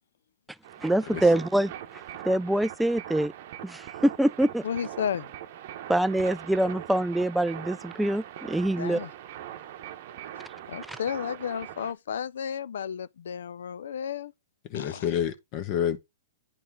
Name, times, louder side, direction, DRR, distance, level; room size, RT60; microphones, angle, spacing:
sound 1, 0.6-11.9, right 11 dB, 55° right, 0.8 m, -41 dB
voice 1, 0.8-1.7 2.2-3.3 3.6-4.6 5.9-9.0 10.9-11.0, right 1 dB, 5° right, 0.3 m, -25 dB
voice 2, 4.6-5.3 8.8-9.1 10.7-14.3 14.7-15.1, left 8 dB, 70° left, 0.4 m, -33 dB
voice 3, 14.7-16.0, left 9 dB, 45° left, 1.2 m, -29 dB
9.6 x 4.3 x 3.6 m
hypercardioid pair, 115°, 0 cm